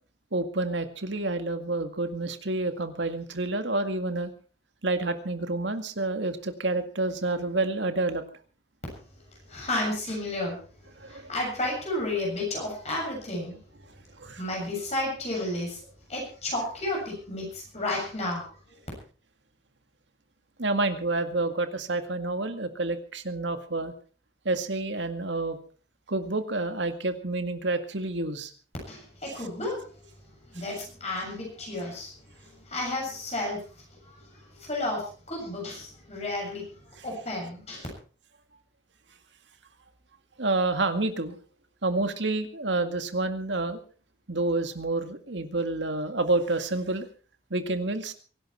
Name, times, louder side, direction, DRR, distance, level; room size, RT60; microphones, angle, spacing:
voice 1, 0.3-4.3 4.8-8.2 11.0-11.3 14.2-14.4 20.6-23.9 24.5-25.6 26.1-28.5 40.4-41.4 41.8-43.8 44.3-47.1 47.5-48.1, right 2 dB, 80° right, 8 dB, 2.1 m, -28 dB
voice 2, 9.5-10.6 11.1-13.6 14.4-15.8 16.1-18.4 28.9-29.8 30.5-32.1 32.4-33.6 34.0-36.6 37.0-37.9, left 1 dB, 35° left, -1 dB, 7.3 m, -32 dB
23.5 x 11.5 x 4.4 m, 0.40 s
head